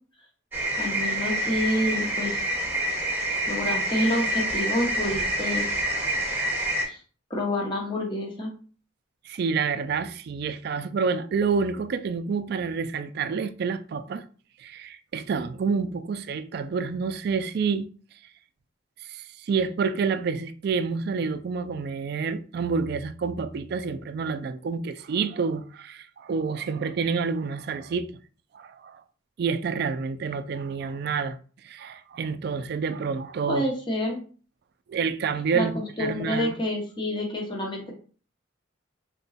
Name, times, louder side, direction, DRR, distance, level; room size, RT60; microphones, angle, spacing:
sound 1, 0.5-6.8, right 1 dB, 10° right, 1.1 m, -27 dB
voice 1, 0.8-2.4 3.5-5.7 6.8-7.0 7.3-8.5 33.5-34.2 35.5-37.9, left 1 dB, 25° left, 0.9 m, -28 dB
voice 2, 9.3-14.2 14.6-17.9 19.1-28.1 28.5-29.0 29.4-31.4 31.6-33.6 34.9-35.7 36.0-36.6, right 5 dB, 55° right, 0.3 m, -28 dB
3.8 x 2.2 x 4.0 m
head